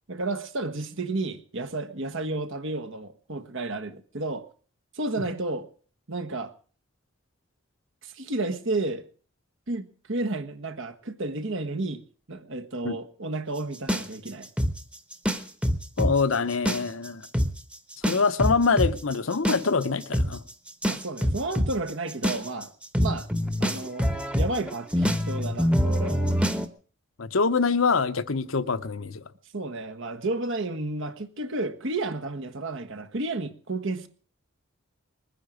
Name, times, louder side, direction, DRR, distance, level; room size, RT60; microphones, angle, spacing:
voice 1, 0.1-4.5 4.9-5.7 6.1-6.5 8.0-9.0 9.7-12.0 12.3-14.5 20.8-22.7 23.0-23.3 23.6-26.4 29.5-34.1, right 2 dB, 65° right, 1.5 m, -32 dB
sound 1, 13.9-16.1 16.5-17.1 17.3-17.5 18.0-26.7, equal, 5° right, 1.0 m, -25 dB
voice 2, 16.0-17.2 18.0-20.4 26.2-26.3 27.2-29.2, left 4 dB, 65° left, 0.9 m, -24 dB
20.5 x 10.0 x 6.3 m
head